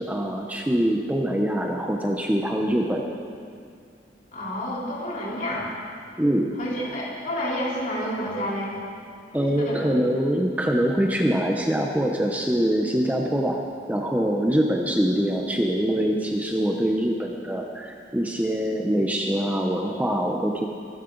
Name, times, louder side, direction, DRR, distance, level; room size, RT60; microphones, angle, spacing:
voice 1, 0.0-3.0 6.2-6.6 9.3-20.7, equal, 10° right, 1 dB, 0.8 m, -24 dB
voice 2, 4.3-5.7 6.6-8.7 9.4-9.8, equal, 45° left, -6 dB, 3.9 m, -29 dB
22.5 x 12.5 x 4.0 m, 2.3 s
head